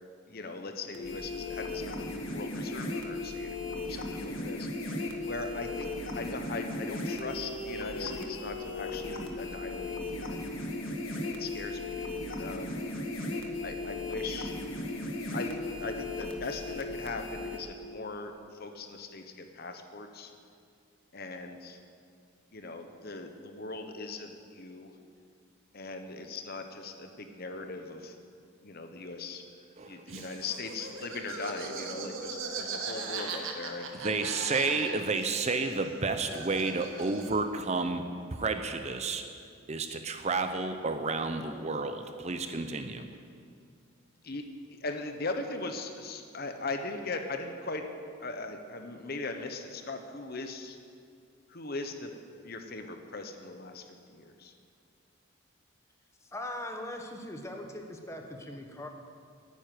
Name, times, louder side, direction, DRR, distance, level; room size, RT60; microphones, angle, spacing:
voice 1, 0.3-4.7 5.2-10.7 11.4-12.1 12.4-12.8 13.6-14.5 15.3-20.3 21.1-21.8 22.5-24.9 25.7-28.1 28.6-29.4 29.8-34.8 35.2-35.3 44.2-44.4 44.7-47.8 48.2-50.8 51.5-52.1 52.4-54.5, left 3 dB, 45° left, 6 dB, 1.0 m, -39 dB
sound 1, 0.9-17.6, left 2 dB, 70° left, 1.7 m, -36 dB
voice 2, 29.8-30.2 34.0-38.0 38.3-39.2 39.7-43.1, right 3 dB, 30° right, 7 dB, 0.7 m, -31 dB
Laughter, 30.1-35.3 35.5-37.5, right 4 dB, 75° right, 1.6 m, -39 dB
voice 3, 56.3-58.9, left 1 dB, 15° left, 3 dB, 1.2 m, -40 dB
11.5 x 9.6 x 9.3 m, 2.3 s
head